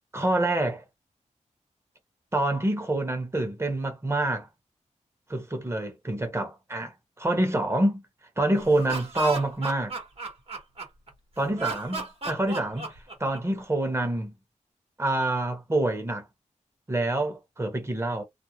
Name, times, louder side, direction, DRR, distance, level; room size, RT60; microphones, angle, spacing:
voice 1, 0.1-0.8 2.3-4.5 5.3-8.0 8.4-9.9 11.4-14.3 15.0-16.2 16.9-18.2, right 2 dB, 20° right, 0.9 m, -27 dB
Laughter, 8.6-11.1 11.6-13.6, right 4 dB, 50° right, 1.1 m, -34 dB
2.5 x 2.0 x 2.8 m
wide cardioid pair, 105°, 13 cm